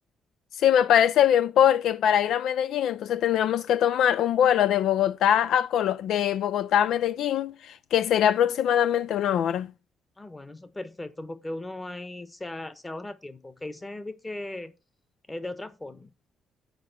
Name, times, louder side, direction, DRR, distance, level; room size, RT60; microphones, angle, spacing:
voice 1, 0.6-9.7, left 10 dB, 75° left, 0.3 m, -22 dB
voice 2, 10.2-14.7 15.3-16.1, left 2 dB, 20° left, 1.2 m, -38 dB
6.8 x 4.8 x 6.6 m
cardioid pair, 90°, 0 cm